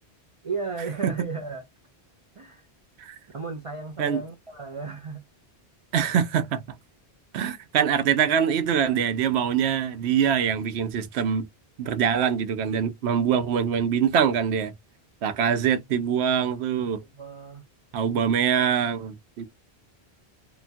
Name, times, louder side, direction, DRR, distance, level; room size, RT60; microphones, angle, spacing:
voice 1, 0.4-1.7 2.4-2.7 3.3-5.3 16.9-17.7, right 4 dB, 45° right, 0.4 m, -34 dB
voice 2, 5.9-6.6 7.3-11.4 11.8-14.7 15.2-17.0 17.9-19.4, right 8 dB, 75° right, 0.8 m, -24 dB
2.9 x 2.2 x 2.5 m
omnidirectional pair, 1.1 m